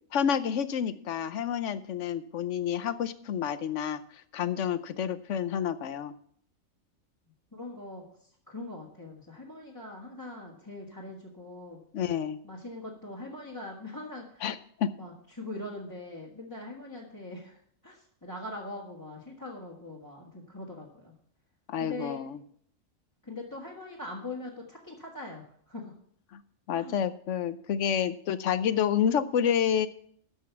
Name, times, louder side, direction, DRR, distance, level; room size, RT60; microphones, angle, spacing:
voice 1, 0.1-4.0 4.3-6.1 11.9-12.4 14.4-14.9 21.7-22.4 26.3-26.4 26.7-29.9, left 8 dB, 65° left, 13 dB, 1.0 m, -29 dB
voice 2, 7.5-11.8 12.4-14.5 15.0-21.1 21.8-22.2 23.2-25.9 26.7-26.9, left 2 dB, 15° left, -5 dB, 1.8 m, -42 dB
13.0 x 5.5 x 7.1 m, 0.63 s
omnidirectional pair, 1.4 m